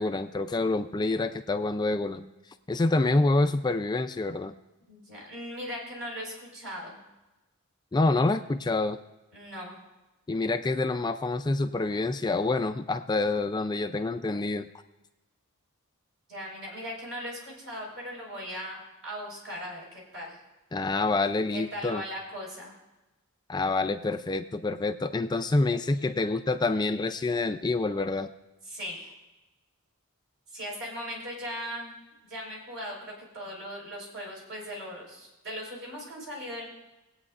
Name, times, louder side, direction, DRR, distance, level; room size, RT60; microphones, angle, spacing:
voice 1, 0.0-2.2 2.7-4.5 7.9-9.0 10.3-14.7 20.7-22.0 23.5-28.3, left 2 dB, 20° left, 7 dB, 0.4 m, -27 dB
voice 2, 4.9-7.0 9.3-9.8 16.3-20.4 21.5-22.8 28.7-29.1 30.5-32.0 32.2-36.7, equal, 60° right, -3 dB, 4.7 m, -39 dB
21.0 x 8.8 x 2.5 m, 1.0 s
head